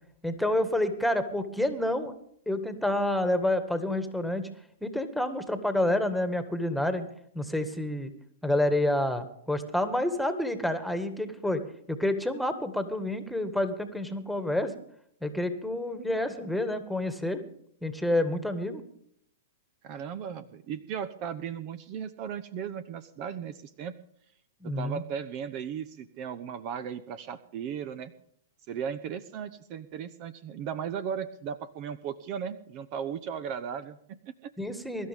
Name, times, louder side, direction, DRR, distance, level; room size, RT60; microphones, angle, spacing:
voice 1, 0.2-2.1 2.5-4.4 4.8-7.1 7.3-8.1 8.4-11.6 11.9-14.7 15.2-17.4 17.8-18.8 24.6-25.0 34.6-35.1, left 1 dB, ahead, 8 dB, 1.8 m, -28 dB
voice 2, 19.8-23.9 24.6-28.1 28.7-34.5, right 8 dB, 40° right, 14 dB, 1.0 m, -36 dB
23.5 x 12.5 x 3.6 m, 0.67 s
hypercardioid pair, 120°, 0 cm